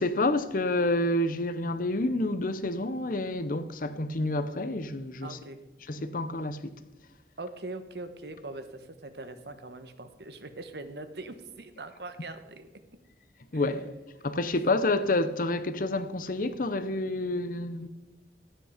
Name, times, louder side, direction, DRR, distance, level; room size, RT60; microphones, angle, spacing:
voice 1, 0.0-5.4 5.9-6.8 13.5-13.9 14.2-17.9, left 2 dB, 50° left, 0.8 m, -28 dB
voice 2, 5.2-5.6 7.4-12.7 13.5-13.6, right 2 dB, 65° right, 1.1 m, -41 dB
13.0 x 9.0 x 5.1 m
head